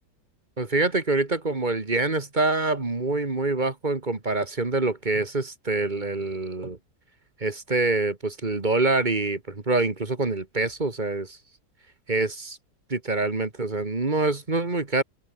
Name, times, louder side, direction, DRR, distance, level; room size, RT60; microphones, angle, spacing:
voice 1, 0.6-6.8 7.4-11.4 12.1-12.6 12.9-15.0, right 3 dB, 25° right, 2.0 m, -25 dB
open air
omnidirectional pair, 1.9 m